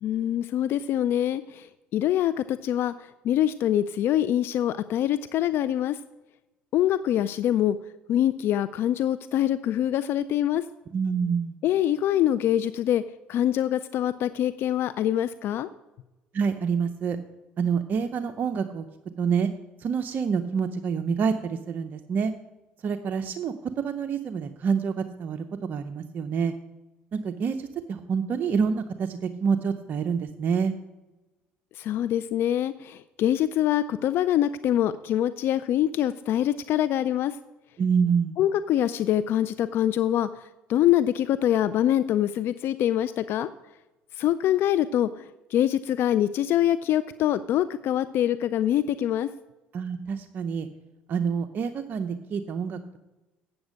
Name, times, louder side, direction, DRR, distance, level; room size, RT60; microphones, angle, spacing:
voice 1, 0.0-1.7 1.9-2.9 3.2-6.0 6.7-7.8 8.1-10.6 11.6-13.0 13.3-15.7 31.8-37.4 38.4-40.3 40.7-43.5 44.2-49.3, left 11 dB, 60° left, 14 dB, 0.4 m, -24 dB
voice 2, 10.9-11.5 16.3-17.2 17.6-18.9 19.2-19.5 19.8-22.3 22.8-26.5 27.1-30.7 37.8-38.4 49.7-50.7 51.1-52.8, right 6 dB, 50° right, 7 dB, 0.6 m, -27 dB
8.1 x 8.0 x 6.3 m, 1.1 s
supercardioid pair, 85°, 4 cm